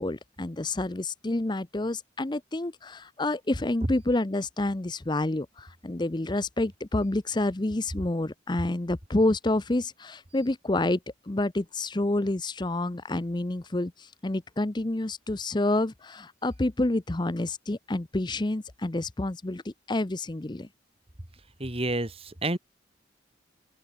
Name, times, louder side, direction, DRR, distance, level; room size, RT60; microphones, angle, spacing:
voice 1, 0.0-11.0 11.3-20.7, left 2 dB, 25° left, 0.7 m, -28 dB
voice 2, 21.6-22.6, right 2 dB, 30° right, 2.3 m, -29 dB
open air
head